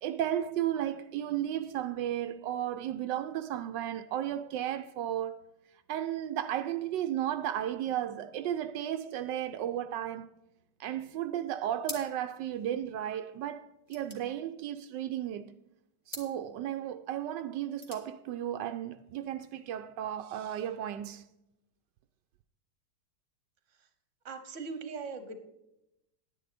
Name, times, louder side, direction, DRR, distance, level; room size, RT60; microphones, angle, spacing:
voice 1, 0.0-5.4 5.9-10.3 10.8-15.6 16.1-21.2, right 11 dB, 85° right, 1.3 m, -34 dB
sound 1, 11.8-12.4 12.7-12.8 13.0-15.2 16.0-16.4 17.5-18.1, left 1 dB, 25° left, 1.6 m, -45 dB
voice 2, 24.2-25.4, right 4 dB, 45° right, 1.5 m, -39 dB
10.0 x 9.9 x 4.2 m
omnidirectional pair, 1.9 m